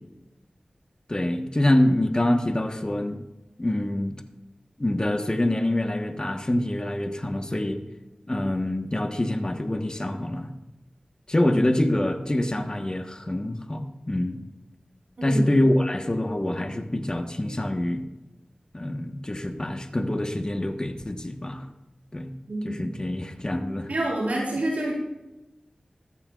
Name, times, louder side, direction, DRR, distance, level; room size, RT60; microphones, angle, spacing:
voice 1, 1.1-3.2 3.6-4.2 4.8-7.8 8.3-10.5 11.3-14.4 15.2-18.1 18.7-21.7 22.1-22.3 22.6-23.9, left 1 dB, 30° left, 5 dB, 1.4 m, -25 dB
voice 2, 23.9-24.9, right 1 dB, 80° right, -4 dB, 4.0 m, -27 dB
14.5 x 13.5 x 2.5 m, 1.0 s
cardioid pair, 40°, 3 cm